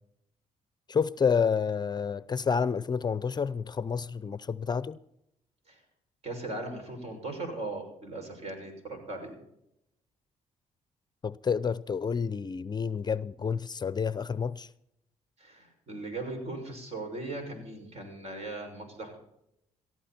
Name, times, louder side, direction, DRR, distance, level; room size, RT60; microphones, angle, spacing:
voice 1, 0.9-5.0 11.2-14.7, left 6 dB, 35° left, 0.6 m, -29 dB
voice 2, 6.2-9.4 15.4-19.2, right 2 dB, 55° right, 6.4 m, -38 dB
17.5 x 14.5 x 4.4 m
cardioid pair, 80°, 13 cm